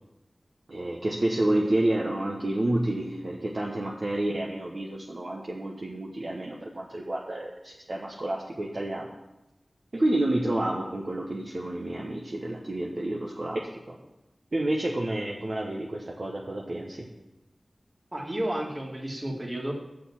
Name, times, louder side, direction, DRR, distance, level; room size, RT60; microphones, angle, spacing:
voice 1, 0.7-9.1 9.9-13.6 13.9-14.0 14.5-17.1, right 1 dB, 60° right, -1 dB, 0.9 m, -29 dB
voice 2, 18.1-19.7, right 1 dB, 35° right, 0 dB, 1.9 m, -32 dB
6.7 x 6.2 x 7.0 m, 0.97 s
wide cardioid pair, 50°, 0 cm